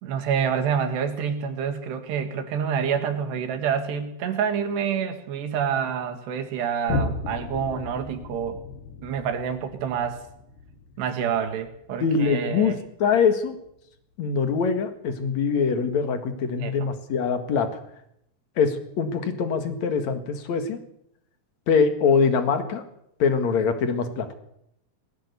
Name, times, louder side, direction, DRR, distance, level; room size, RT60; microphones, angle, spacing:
voice 1, 0.0-8.6 9.0-10.2 11.0-12.8 16.6-16.7, right 7 dB, 80° right, 7 dB, 4.0 m, -27 dB
Boom, 6.9-13.8 14.3-14.4, left 3 dB, 75° left, 3.6 m, -35 dB
voice 2, 12.0-13.6 14.2-17.7 18.6-20.8 21.7-22.8 23.2-24.3, left 5 dB, 50° left, 8 dB, 2.5 m, -23 dB
20.0 x 15.5 x 8.3 m, 0.76 s
omnidirectional pair, 4.8 m